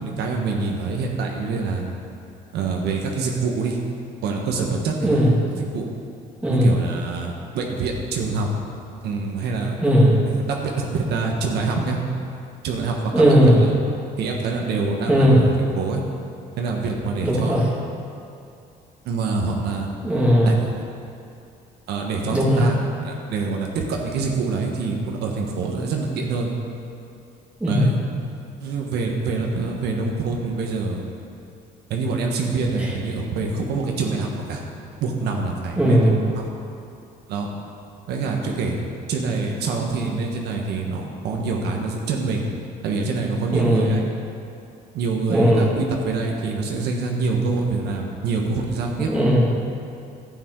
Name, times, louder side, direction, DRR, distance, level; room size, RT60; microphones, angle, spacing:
voice 1, 0.0-1.8 2.5-3.8 4.2-5.2 5.6-5.8 6.5-8.5 9.0-9.8 10.2-12.0 12.6-13.2 13.6-13.8 14.2-15.5 15.7-16.0 16.6-17.5 19.0-19.9 20.4-20.6 21.9-26.5 27.7-28.0 28.6-31.0 31.9-34.6 35.0-36.5 37.3-37.5 38.1-38.8 39.1-42.4 42.8-44.1 44.9-49.1, right 4 dB, 75° right, 0 dB, 1.4 m, -25 dB
voice 2, 6.4-6.7 9.8-10.2 13.1-13.6 15.1-15.4 17.2-17.7 20.0-20.5 22.3-22.7 27.6-27.9 35.8-36.3 43.5-43.9 45.3-45.7 49.0-49.5, equal, 5° right, -5 dB, 2.3 m, -17 dB
11.5 x 9.1 x 4.7 m, 2.6 s
cardioid pair, 110°, 17 cm